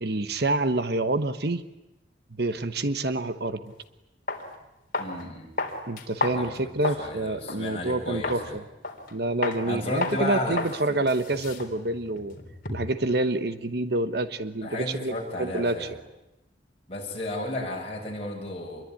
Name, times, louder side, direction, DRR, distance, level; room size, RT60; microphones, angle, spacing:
voice 1, 0.0-1.6 2.4-3.7 5.9-8.4 9.1-12.4 12.7-16.0, right 2 dB, 55° right, 11 dB, 1.2 m, -27 dB
sound 1, 3.7-3.8 4.3-4.4 4.9-5.2 5.6-7.1 7.5-7.6 8.2-8.5 8.8-9.1 9.4-9.6 10.0-10.2 10.6-10.8 11.1-13.0, left 3 dB, 45° left, 4.0 m, -31 dB
voice 2, 5.0-5.5 6.3-6.5 7.0-8.6 9.7-10.6 10.9-11.0 14.6-16.0 16.9-18.8, left 1 dB, 30° left, -1 dB, 7.9 m, -33 dB
27.0 x 22.5 x 9.8 m, 0.96 s
head